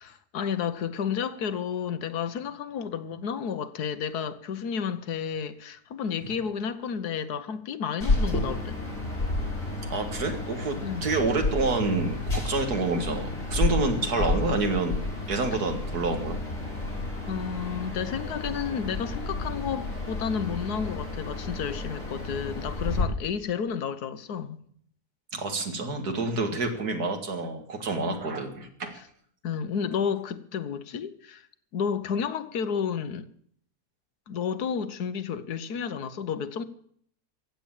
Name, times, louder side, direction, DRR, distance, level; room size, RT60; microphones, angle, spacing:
voice 1, 0.0-8.8 10.8-11.0 13.9-14.5 15.5-15.6 17.2-24.6 26.5-26.6 28.0-28.2 29.4-31.5 31.7-33.3 34.3-36.6, left 7 dB, 75° left, 1.5 m, -31 dB
sound 1, 8.0-23.0, left 2 dB, 55° left, 5.5 m, -31 dB
voice 2, 9.9-16.4 25.3-29.0, right 3 dB, 75° right, 2.5 m, -28 dB
15.0 x 8.6 x 8.9 m
omnidirectional pair, 1.7 m